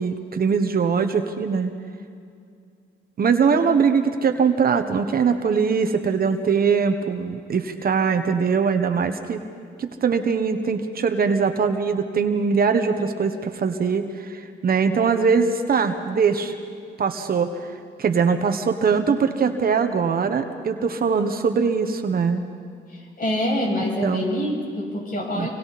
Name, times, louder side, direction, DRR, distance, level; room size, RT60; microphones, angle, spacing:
voice 1, 0.0-1.7 3.2-9.4 9.8-16.5 17.0-17.7 18.0-22.4 24.0-24.2 25.4-25.5, right 5 dB, 50° right, 7 dB, 1.3 m, -22 dB
voice 2, 22.9-25.5, left 1 dB, 45° left, -1 dB, 7.3 m, -26 dB
26.5 x 24.5 x 4.3 m, 2.4 s
cardioid pair, 90°, 20 cm